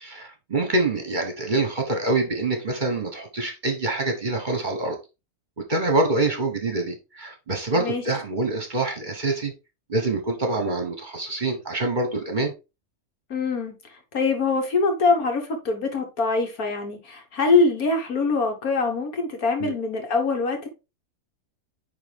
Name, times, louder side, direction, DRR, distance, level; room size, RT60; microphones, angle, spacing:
voice 1, 0.0-5.0 5.6-9.5 9.9-12.5 19.6-19.7, right 2 dB, 35° right, 1.1 m, -25 dB
voice 2, 13.3-20.7, left 4 dB, 75° left, 2.0 m, -24 dB
9.6 x 3.5 x 3.5 m
omnidirectional pair, 1.5 m